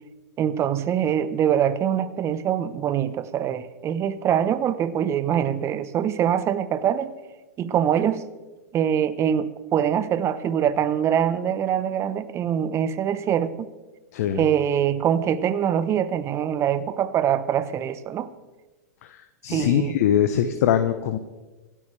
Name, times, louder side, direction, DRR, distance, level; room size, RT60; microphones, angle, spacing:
voice 1, 0.4-7.1 7.6-8.3 8.7-13.7 14.3-18.3 19.5-20.0, right 9 dB, 30° right, 14 dB, 1.0 m, -24 dB
voice 2, 14.1-14.4 19.0-21.2, left 9 dB, 60° left, 9 dB, 1.0 m, -22 dB
27.0 x 12.5 x 3.4 m, 1.2 s
hypercardioid pair, 105°, 9 cm